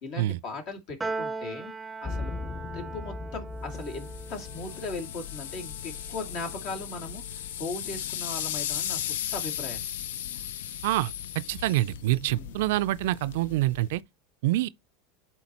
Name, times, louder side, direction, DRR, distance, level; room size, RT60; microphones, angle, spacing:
voice 1, 0.0-1.7 2.0-2.3 2.7-7.2 7.6-9.8 12.2-12.5, left 3 dB, 60° left, 2.3 m, -38 dB
Piano, 1.0-7.5, right 3 dB, 10° right, 0.5 m, -40 dB
sound 1, 2.0-11.1, left 3 dB, 25° left, 1.0 m, -42 dB
sound 2, 3.7-14.0, left 10 dB, 80° left, 0.4 m, -36 dB
voice 2, 11.5-14.0 14.4-14.7, right 16 dB, 75° right, 0.3 m, -26 dB
11.5 x 4.0 x 2.9 m
hypercardioid pair, 100°, 0 cm